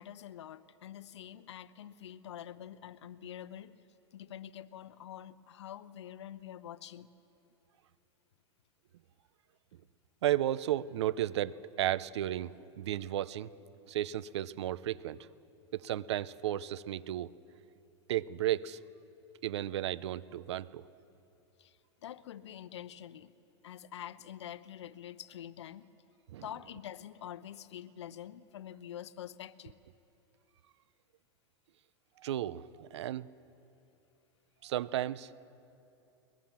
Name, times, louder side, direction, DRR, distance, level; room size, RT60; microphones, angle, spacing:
voice 1, 0.0-3.8 4.1-7.1 21.6-21.8 22.0-23.3 23.6-25.9 26.4-29.8, left 11 dB, 80° left, 13 dB, 0.8 m, -46 dB
voice 2, 10.2-13.5 13.9-15.2 15.7-17.3 18.1-18.8 19.4-20.8 26.3-26.5 32.2-33.3 34.6-35.3, right 12 dB, 80° right, 18 dB, 0.6 m, -33 dB
22.0 x 21.5 x 7.4 m, 2.8 s
hypercardioid pair, 110°, 14 cm